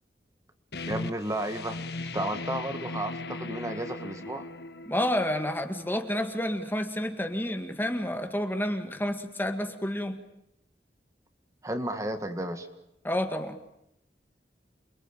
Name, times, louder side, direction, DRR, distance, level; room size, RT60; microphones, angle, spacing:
sound 1, 0.7-6.2, left 2 dB, 70° left, 1.7 m, -38 dB
voice 1, 0.9-1.8 2.1-4.5 11.6-12.7, right 1 dB, 20° right, 7 dB, 1.7 m, -33 dB
voice 2, 4.9-10.2 13.0-13.6, left 1 dB, 10° left, 7 dB, 1.9 m, -30 dB
28.5 x 22.5 x 9.1 m, 0.81 s
head